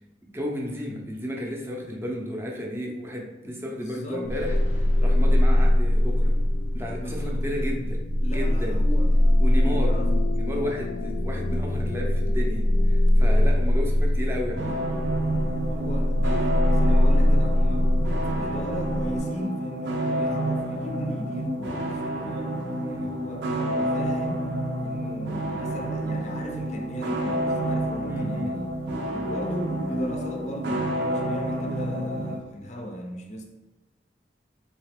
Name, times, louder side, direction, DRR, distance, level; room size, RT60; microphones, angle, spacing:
voice 1, 0.3-6.4 6.7-8.0 8.3-8.8 9.4-10.0 10.3-14.8 22.8-23.1 28.1-28.5, equal, 15° right, -1 dB, 0.6 m, -33 dB
voice 2, 3.6-4.3 5.2-5.5 6.9-7.7 8.2-10.3 15.7-17.9 18.3-22.5 22.9-28.8 29.1-33.4, equal, 40° left, 2 dB, 0.5 m, -37 dB
sound 1, 4.2-19.2, left 1 dB, 90° left, 0.5 m, -22 dB
sound 2, 14.6-32.4, right 1 dB, 85° right, 0.7 m, -29 dB
3.9 x 3.2 x 3.5 m, 1.1 s
head